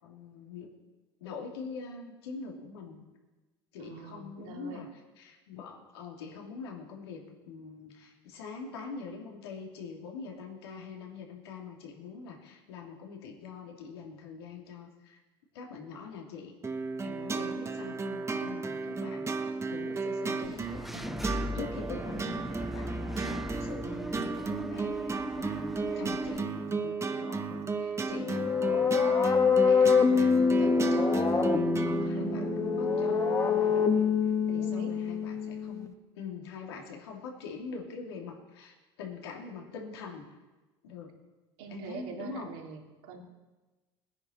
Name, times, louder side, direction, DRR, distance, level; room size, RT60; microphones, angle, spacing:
voice 1, 0.0-0.7 1.2-3.0 3.7-15.2 15.5-16.5 17.0-40.2 40.8-41.1 41.7-42.5, left 5 dB, 85° left, 0 dB, 2.9 m, -44 dB
voice 2, 3.8-4.8 32.1-32.6 34.5-34.9 41.6-43.2, right 4 dB, 70° right, 0 dB, 3.2 m, -44 dB
sound 1, 16.6-32.1, right 4 dB, 20° right, 1.2 m, -34 dB
Engine / Mechanisms, 20.4-26.4, equal, ahead, 0.5 m, -37 dB
sound 2, 28.1-35.9, left 5 dB, 25° left, 1.7 m, -25 dB
19.0 x 10.5 x 4.5 m, 1.2 s
hypercardioid pair, 85°, 13 cm